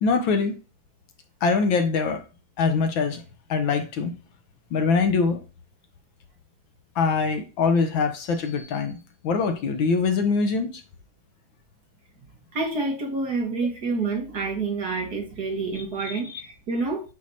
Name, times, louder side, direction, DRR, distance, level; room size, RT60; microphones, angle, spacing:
voice 1, 0.0-0.5 1.4-2.2 2.6-3.2 3.5-4.1 4.7-5.4 7.0-9.0 9.2-10.8 15.8-16.4, left 4 dB, 70° left, 1.4 m, -23 dB
voice 2, 12.5-17.0, right 3 dB, 50° right, 1.7 m, -28 dB
8.3 x 4.7 x 2.7 m
omnidirectional pair, 2.4 m